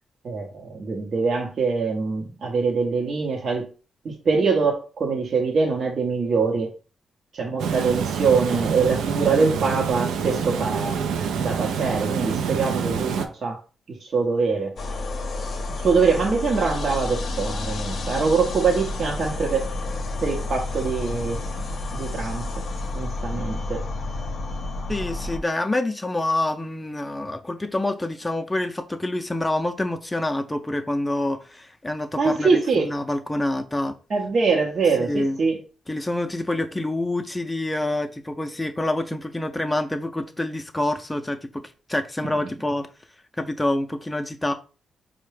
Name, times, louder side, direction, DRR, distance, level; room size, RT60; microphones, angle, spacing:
voice 1, 0.2-3.7 4.0-6.7 7.3-11.0 11.3-13.6 13.9-14.7 15.8-19.7 20.2-21.4 21.9-22.6 22.9-23.8 32.2-32.9 34.1-35.6, right 4 dB, 60° right, 0.7 m, -23 dB
Water, 7.6-13.3, right 6 dB, 85° right, 0.3 m, -26 dB
sound 1, 14.8-25.4, left 2 dB, 65° left, 0.6 m, -30 dB
voice 2, 24.9-33.9 35.0-35.4 35.9-41.6 41.9-42.9 43.4-44.5, left 1 dB, 15° left, 0.4 m, -27 dB
4.5 x 2.1 x 3.2 m
supercardioid pair, 55°, 0 cm